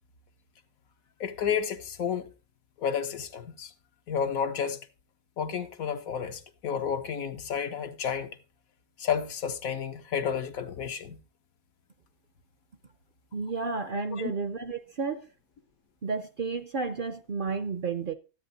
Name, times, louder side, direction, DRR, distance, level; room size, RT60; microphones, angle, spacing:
voice 1, 1.2-2.3 2.8-3.7 4.1-4.8 5.4-8.3 9.0-11.2 13.9-14.3, left 7 dB, 75° left, 1.4 m, -31 dB
voice 2, 13.3-15.3 16.0-18.1, right 4 dB, 50° right, 0.6 m, -32 dB
12.5 x 8.6 x 3.9 m
omnidirectional pair, 1.5 m